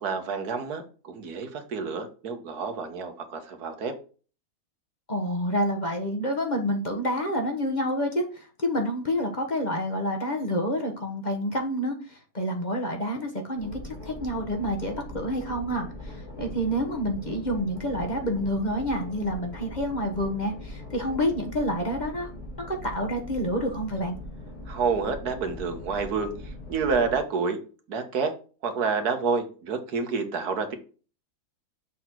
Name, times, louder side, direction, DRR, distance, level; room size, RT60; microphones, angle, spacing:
voice 1, 0.0-3.9 24.7-26.3 26.7-27.6 27.9-28.3 28.6-30.7, right 5 dB, 75° right, 7 dB, 1.6 m, -28 dB
voice 2, 5.1-22.3 22.7-24.2, equal, 30° left, 2 dB, 1.2 m, -28 dB
sound 1, 13.6-27.2, left 1 dB, 75° left, 3.4 m, -41 dB
7.0 x 4.2 x 4.4 m, 0.37 s
omnidirectional pair, 1.7 m